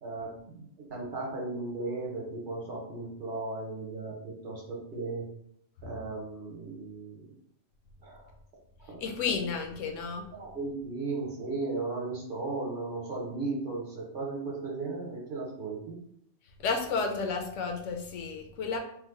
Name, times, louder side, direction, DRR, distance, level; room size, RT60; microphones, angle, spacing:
voice 1, 0.0-5.3 5.8-7.2 8.0-8.3 8.9-9.0 10.3-16.0, right 3 dB, 50° right, -2 dB, 1.0 m, -36 dB
voice 2, 9.0-10.2 16.6-18.8, left 4 dB, 80° left, 4 dB, 0.9 m, -32 dB
3.1 x 2.2 x 3.6 m, 0.69 s
omnidirectional pair, 1.3 m